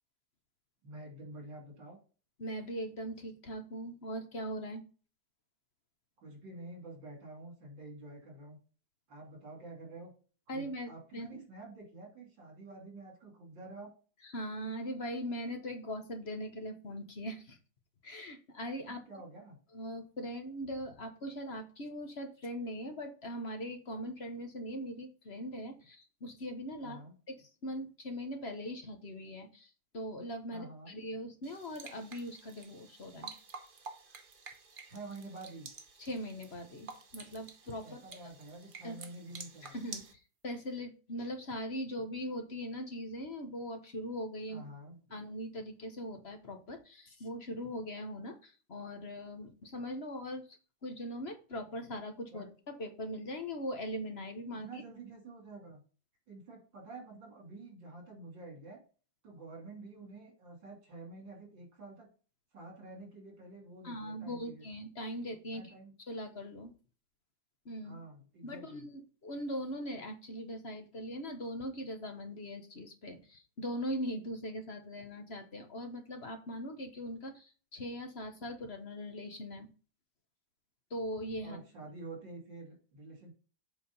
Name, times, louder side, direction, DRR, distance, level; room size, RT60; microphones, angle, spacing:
voice 1, 0.8-2.0 6.2-8.6 9.1-10.1 10.5-13.9 18.9-19.6 26.8-27.1 30.5-31.0 34.8-35.7 37.8-39.8 44.5-45.0 52.3-52.5 54.6-55.8 56.3-58.8 59.2-62.1 62.5-64.6 65.5-65.9 67.8-68.9 81.4-83.3, right 2 dB, 75° right, 0 dB, 3.8 m, -48 dB
voice 2, 2.4-4.8 10.5-11.4 14.2-17.6 18.0-19.0 19.7-27.0 27.3-33.3 36.0-38.0 38.8-39.0 39.6-44.7 45.1-52.5 52.8-54.8 63.8-65.7 66.1-66.7 67.6-68.0 68.4-79.7 80.9-81.6, equal, 40° left, 5 dB, 1.2 m, -40 dB
sound 1, 31.4-40.1, right 4 dB, 40° right, 0.8 m, -50 dB
7.6 x 4.5 x 5.4 m, 0.36 s
omnidirectional pair, 2.0 m